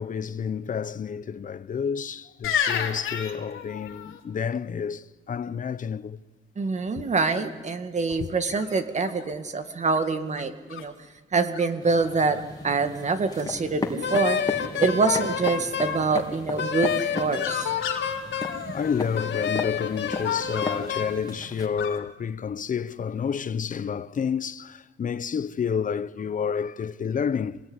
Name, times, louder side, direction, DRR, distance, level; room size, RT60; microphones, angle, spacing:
voice 1, 0.0-6.2 7.0-7.1 7.3-7.4 8.2-8.3 18.7-27.6, left 7 dB, 40° left, 0.9 m, -30 dB
sound 1, 2.4-4.2 7.3-7.8 8.5-9.3 9.9-10.9 11.5-11.7 11.9-12.4 12.7-13.3 17.0-19.5 20.0-20.9 21.8-22.0, left 8 dB, 80° left, 3.0 m, -33 dB
voice 2, 6.6-10.9 11.3-12.4 12.6-17.7 18.7-18.8, right 4 dB, 35° right, 2.2 m, -25 dB
sound 2, 11.8-21.7, left 3 dB, 20° left, 3.1 m, -36 dB
Wind instrument woodwind instrument, 14.0-16.0 16.6-18.6 19.1-21.2, left 8 dB, 60° left, 2.6 m, -29 dB
26.0 x 20.0 x 9.9 m
cardioid pair, 120°, 21 cm